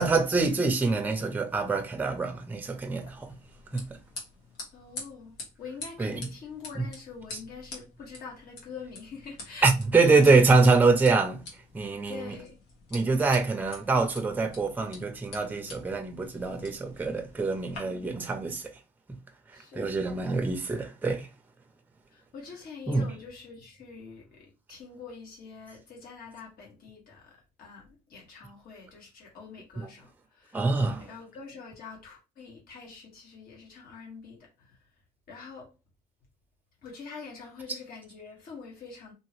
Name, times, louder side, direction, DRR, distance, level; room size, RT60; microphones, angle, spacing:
voice 1, 0.0-3.3 3.7-4.0 6.0-6.3 6.7-6.9 7.3-7.4 9.6-11.4 11.7-12.4 12.9-18.8 19.7-21.3 22.9-23.1 29.8-29.9 30.5-31.1, right 3 dB, 10° right, 0.5 m, -25 dB
sound 1, 3.0-17.8, left 3 dB, 85° left, 1.4 m, -47 dB
voice 2, 4.7-9.7 12.1-12.6 17.8-18.2 19.5-20.0 22.1-30.6 31.0-34.8 35.3-35.7 36.8-39.1, left 5 dB, 65° left, 1.6 m, -45 dB
2.8 x 2.7 x 3.0 m
cardioid pair, 110°, 17 cm